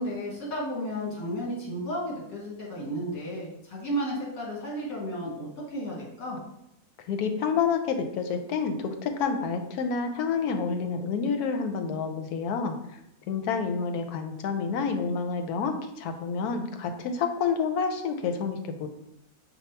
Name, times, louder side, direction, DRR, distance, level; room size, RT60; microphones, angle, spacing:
voice 1, 0.0-6.4, equal, 70° left, -3 dB, 1.8 m, -33 dB
voice 2, 7.1-12.8 13.3-18.9, left 5 dB, 90° left, 7 dB, 1.1 m, -28 dB
5.3 x 2.3 x 4.4 m, 0.82 s
omnidirectional pair, 1.6 m